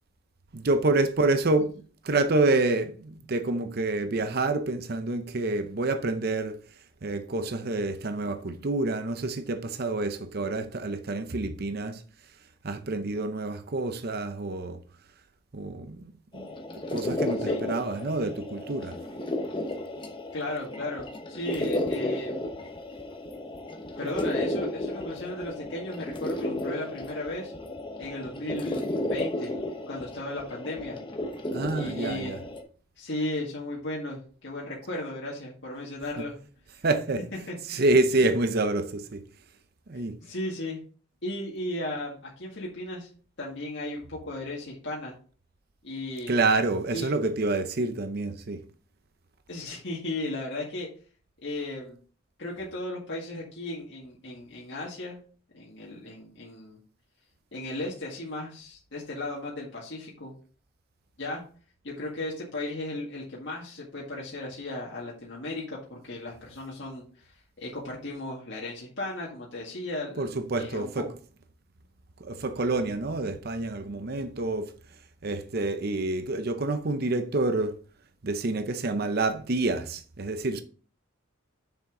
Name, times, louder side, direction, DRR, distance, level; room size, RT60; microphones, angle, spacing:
voice 1, 0.5-6.6 7.0-12.0 12.6-14.8 15.5-16.5 16.9-19.0 31.5-32.4 36.2-36.3 36.8-37.3 37.7-39.2 39.9-40.2 46.3-48.6 70.2-71.1 72.2-74.7 75.2-77.8 78.2-80.6, right 2 dB, 50° right, 0.7 m, -27 dB
sound 1, 16.3-32.6, left 1 dB, 25° left, 1.1 m, -33 dB
voice 2, 20.3-22.4 24.0-27.5 28.0-29.6 29.9-31.0 31.8-32.4 33.0-36.3 37.5-37.8 40.2-40.8 41.2-43.1 43.4-45.1 45.8-46.4 46.9-47.1 49.5-50.9 51.4-52.0 52.4-55.2 55.5-56.8 57.5-60.3 61.2-61.4 61.8-70.3 70.6-71.0, left 1 dB, 60° left, 1.9 m, -35 dB
7.1 x 6.2 x 3.8 m
head